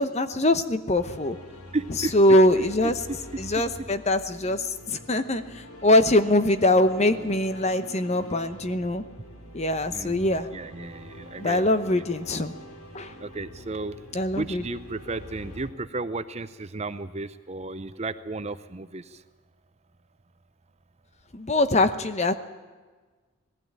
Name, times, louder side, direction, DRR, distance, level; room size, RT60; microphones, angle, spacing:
voice 1, 0.0-1.4 1.9-3.0 3.4-5.4 5.8-9.0 9.5-10.5 11.4-12.5 12.9-13.1 14.1-14.6 21.3-22.3, left 1 dB, 30° left, 11 dB, 0.9 m, -22 dB
sound 1, 0.9-15.7, left 1 dB, 85° left, 2.7 m, -45 dB
voice 2, 1.7-2.1 2.6-3.2 3.8-3.9 9.9-12.0 13.2-14.0 14.3-19.2, right 3 dB, 30° right, 12 dB, 0.6 m, -34 dB
19.0 x 15.5 x 8.8 m, 1.4 s
head